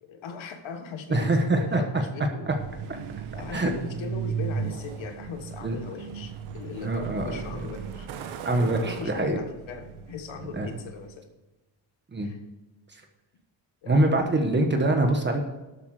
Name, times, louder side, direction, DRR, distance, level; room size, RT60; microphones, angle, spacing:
voice 1, 0.0-2.5 3.3-8.1 8.6-11.3 12.2-12.4 13.8-14.3, left 5 dB, 70° left, 6 dB, 1.7 m, -39 dB
voice 2, 1.1-2.6 3.5-3.7 5.6-5.8 6.8-7.4 8.4-9.4 10.6-10.7 12.1-12.3 12.9-13.0 13.9-15.4, right 2 dB, 20° right, 4 dB, 1.3 m, -24 dB
Truck, 2.4-11.2, right 7 dB, 85° right, 1.4 m, -37 dB
12.5 x 8.3 x 4.9 m, 1.1 s
cardioid pair, 165°, 48 cm